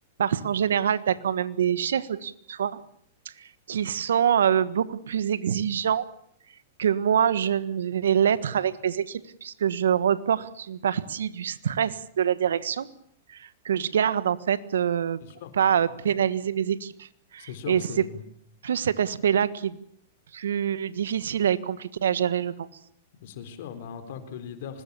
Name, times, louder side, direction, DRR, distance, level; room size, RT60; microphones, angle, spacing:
voice 1, 0.2-2.8 3.4-6.0 6.8-12.9 13.3-15.2 15.6-17.1 17.3-18.0 18.6-19.8 20.3-22.7, right 8 dB, 80° right, 15 dB, 1.4 m, -25 dB
voice 2, 15.2-15.5 16.1-16.2 17.5-18.2 23.2-24.8, left 7 dB, 60° left, 9 dB, 4.0 m, -39 dB
25.0 x 20.0 x 7.0 m, 0.67 s
hypercardioid pair, 120°, 0 cm